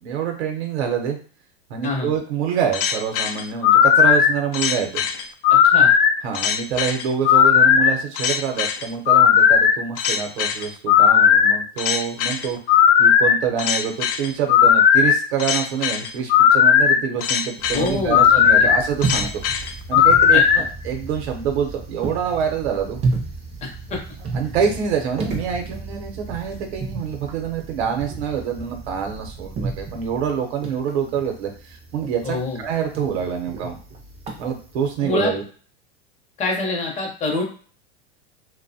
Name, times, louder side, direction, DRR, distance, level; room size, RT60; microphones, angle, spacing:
voice 1, 0.0-1.2 1.7-5.0 6.2-12.6 13.0-19.3 19.9-23.0 24.3-33.8 34.4-35.4, right 7 dB, 75° right, 3 dB, 0.8 m, -26 dB
sound 1, 2.7-20.6, left 8 dB, 60° left, 0.5 m, -16 dB
voice 2, 5.5-5.9 17.7-18.7 20.3-20.4 23.6-24.0 32.2-32.6 35.0-35.3 36.4-37.4, left 3 dB, 20° left, 0 dB, 0.6 m, -26 dB
sound 2, 17.6-35.0, right 3 dB, 20° right, 0.4 m, -32 dB
2.6 x 2.1 x 2.6 m, 0.42 s
supercardioid pair, 145°, 33 cm